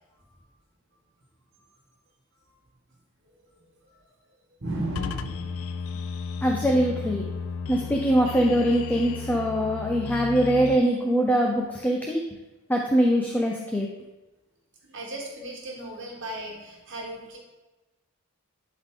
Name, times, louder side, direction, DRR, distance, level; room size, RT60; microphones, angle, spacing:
voice 1, 4.6-5.8 14.9-17.4, right 1 dB, 55° right, -1 dB, 1.4 m, -35 dB
sound 1, 4.9-10.8, left 5 dB, 65° left, 0.4 m, -34 dB
voice 2, 6.4-7.2 7.7-12.2 12.7-13.9, equal, 10° left, 0 dB, 0.6 m, -23 dB
11.0 x 3.9 x 3.7 m, 1.1 s
head